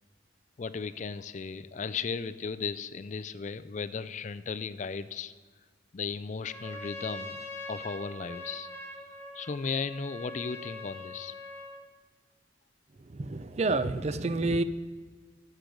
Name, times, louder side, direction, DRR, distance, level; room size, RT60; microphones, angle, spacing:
voice 1, 0.6-5.3 5.9-7.4 7.7-8.7 9.3-11.3, left 5 dB, 40° left, 0.4 m, -35 dB
Trumpet, 6.4-11.9, left 2 dB, 10° left, 1.0 m, -43 dB
voice 2, 13.0-14.6, right 2 dB, 35° right, 0.4 m, -29 dB
13.0 x 7.8 x 5.2 m
head